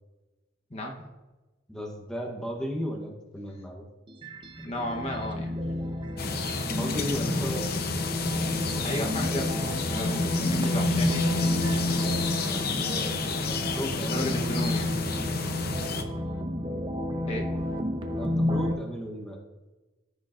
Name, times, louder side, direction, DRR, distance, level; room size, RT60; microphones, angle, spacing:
voice 1, 0.7-1.1 4.6-5.5 8.8-11.3 13.9-14.9 17.3-17.5, left 1 dB, 35° left, 1 dB, 1.0 m, -34 dB
voice 2, 1.7-3.9 6.7-7.7 12.5-14.4 18.2-19.4, equal, 5° left, 0 dB, 1.0 m, -35 dB
sound 1, 4.1-18.7, left 1 dB, 25° right, 0.7 m, -31 dB
sound 2, 6.2-16.0, left 3 dB, 55° left, 0.7 m, -29 dB
14.5 x 6.4 x 2.5 m, 1.1 s
head